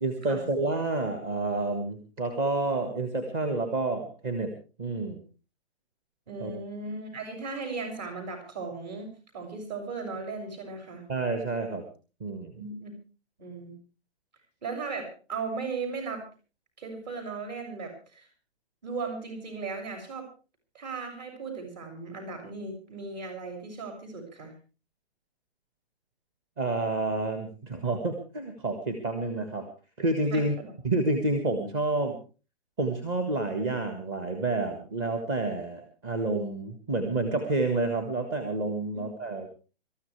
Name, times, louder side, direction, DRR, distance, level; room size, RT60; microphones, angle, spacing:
voice 1, 0.0-4.5 4.8-5.2 6.4-6.5 11.1-11.9 12.2-12.5 26.6-29.7 30.0-30.5 30.8-32.2 32.8-39.5, right 2 dB, 20° right, 6 dB, 1.6 m, -29 dB
voice 2, 6.3-11.0 12.5-12.9 13.4-13.7 14.6-16.3 16.8-18.3 18.8-20.3 20.7-24.5 30.3-30.7 38.9-39.0, right 4 dB, 40° right, 5 dB, 6.9 m, -37 dB
25.5 x 14.0 x 3.4 m, 0.35 s
hypercardioid pair, 165°, 33 cm